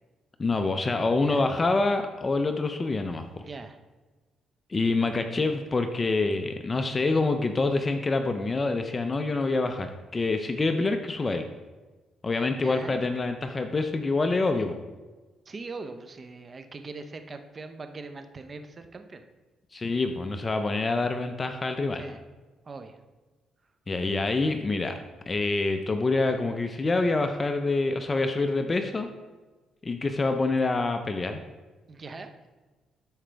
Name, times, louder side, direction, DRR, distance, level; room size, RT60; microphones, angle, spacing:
voice 1, 0.4-3.4 4.7-11.4 12.2-14.8 19.7-22.0 23.9-25.0 25.3-29.1 29.8-31.4, left 3 dB, 30° left, 7 dB, 0.6 m, -26 dB
voice 2, 3.3-3.8 12.6-13.1 15.5-19.2 21.9-22.2 22.7-23.0 31.9-32.3, right 3 dB, 35° right, 7 dB, 0.8 m, -41 dB
13.0 x 5.0 x 3.4 m, 1.2 s
cardioid pair, 90°, 0 cm